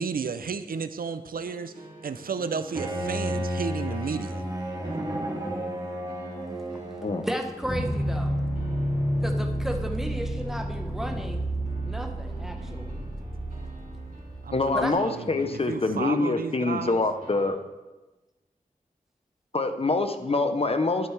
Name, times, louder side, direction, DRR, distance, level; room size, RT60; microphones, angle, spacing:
voice 1, 0.0-4.5 14.4-17.0, right 5 dB, 80° right, 11 dB, 0.5 m, -33 dB
sound 1, 1.3-17.5, right 2 dB, 65° right, 2.1 m, -49 dB
Bowed string instrument, 2.7-7.5, equal, 25° right, 1.8 m, -32 dB
voice 2, 7.2-8.4 9.2-11.5 11.8-13.0 14.7-14.9, equal, 5° right, 3 dB, 1.0 m, -33 dB
sound 2, 7.6-14.8, right 1 dB, 15° left, 2.0 m, -30 dB
voice 3, 14.5-17.6 19.5-21.1, left 3 dB, 40° left, 8 dB, 0.7 m, -25 dB
11.5 x 8.0 x 3.3 m, 1.1 s
wide cardioid pair, 70°, 15 cm